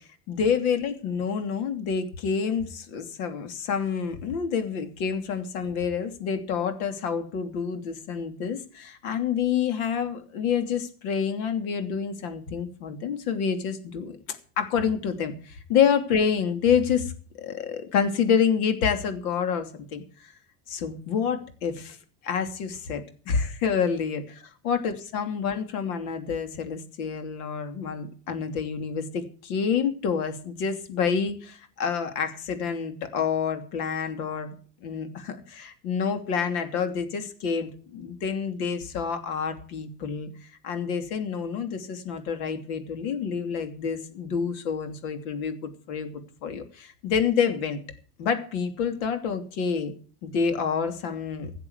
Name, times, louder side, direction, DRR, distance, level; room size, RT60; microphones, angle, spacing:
voice 1, 0.3-20.3 20.7-22.0 22.2-34.5 34.8-40.3 40.6-46.1 46.4-47.8 48.2-49.9 50.2-51.6, left 6 dB, 80° left, 7 dB, 3.0 m, -28 dB
16.5 x 7.6 x 8.1 m, 0.42 s
cardioid pair, 180°, 43 cm